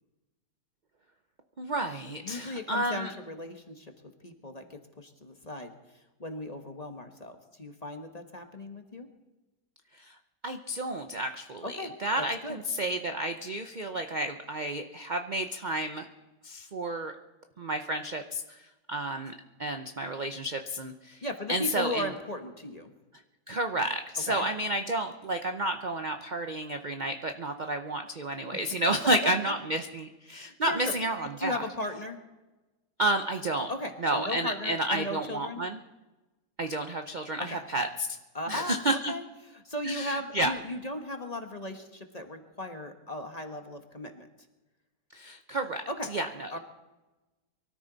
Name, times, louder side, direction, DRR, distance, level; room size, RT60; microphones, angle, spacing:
voice 1, 1.6-3.1 9.9-10.1 10.4-16.1 16.4-17.1 17.6-19.3 19.6-21.2 21.5-22.1 23.5-31.7 33.0-33.7 34.0-35.8 36.6-37.9 38.5-39.1 39.8-40.5 45.1-45.8 46.1-46.6, right 1 dB, 45° right, 6 dB, 0.6 m, -31 dB
voice 2, 2.2-3.9 4.2-5.7 6.2-9.1 11.6-11.9 12.2-12.6 21.2-22.9 24.3-24.5 29.2-29.3 30.3-30.9 31.4-32.2 33.7-35.6 37.4-37.6 38.3-38.7 39.1-39.2 39.5-44.3 45.9-46.2 46.5-46.6, left 1 dB, 25° left, 5 dB, 1.2 m, -37 dB
24.0 x 13.5 x 4.0 m, 1.1 s
omnidirectional pair, 1.8 m